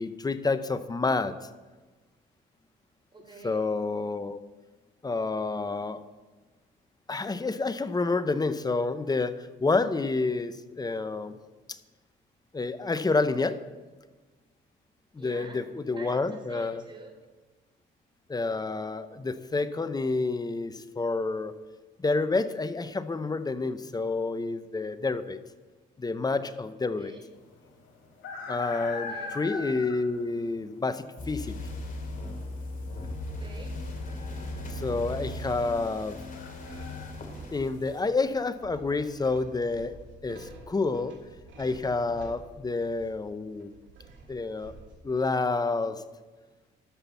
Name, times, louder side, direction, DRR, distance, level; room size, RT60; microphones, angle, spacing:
voice 1, 0.0-1.3 3.4-4.4 5.0-6.0 7.1-11.4 11.7-11.8 12.5-13.6 15.1-16.8 18.3-21.5 22.0-25.4 26.0-27.1 28.5-31.6 34.7-36.2 37.5-40.0 40.2-41.1 41.6-43.7 44.3-44.7 45.0-46.0, left 3 dB, 20° left, 12 dB, 0.7 m, -29 dB
voice 2, 3.1-3.6 15.2-15.6 15.9-17.1 27.0-27.2 28.9-29.3 33.2-33.8, right 3 dB, 25° right, 1 dB, 3.3 m, -47 dB
sound 1, 27.3-37.1, left 4 dB, 80° left, 2.6 m, -41 dB
sound 2, 31.2-38.0, left 1 dB, 45° left, 2.3 m, -37 dB
sound 3, 35.5-45.3, right 3 dB, 70° right, 2.4 m, -50 dB
12.5 x 5.9 x 7.0 m, 1.3 s
cardioid pair, 90°, 20 cm